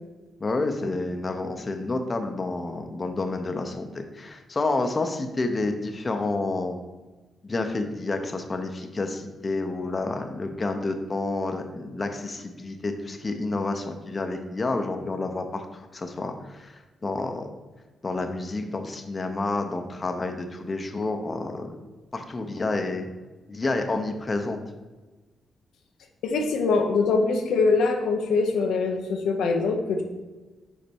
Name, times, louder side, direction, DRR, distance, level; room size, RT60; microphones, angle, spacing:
voice 1, 0.4-6.8 7.4-17.5 18.0-21.8 22.1-23.1 23.5-24.6, left 2 dB, 35° left, 5 dB, 0.7 m, -29 dB
voice 2, 26.2-30.0, left 4 dB, 85° left, 3 dB, 0.7 m, -23 dB
5.3 x 4.2 x 4.5 m, 1.2 s
cardioid pair, 70°, 0 cm